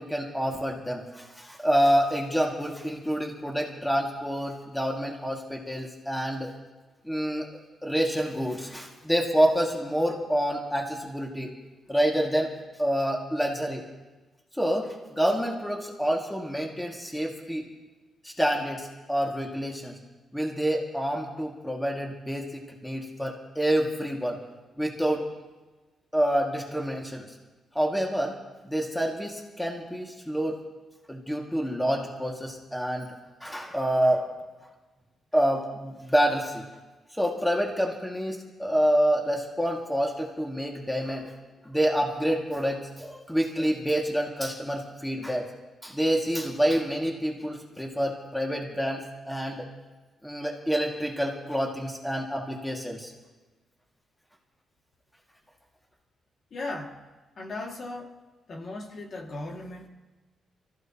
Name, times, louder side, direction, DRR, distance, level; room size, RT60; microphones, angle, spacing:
voice 1, 0.0-6.5 7.0-7.5 7.8-11.5 11.9-12.5 12.8-13.8 14.6-17.7 18.2-20.0 20.3-24.4 24.8-25.3 26.1-27.3 27.7-28.4 28.6-30.6 31.1-33.1 33.4-34.3 35.3-36.6 37.1-41.3 41.6-45.5 45.8-49.7 50.2-53.1, equal, 5° left, -1 dB, 2.2 m, -27 dB
voice 2, 56.5-57.0 57.4-58.2 58.5-59.9, left 2 dB, 45° left, 0 dB, 2.3 m, -37 dB
29.0 x 14.5 x 3.0 m, 1.2 s
cardioid pair, 130°, 0 cm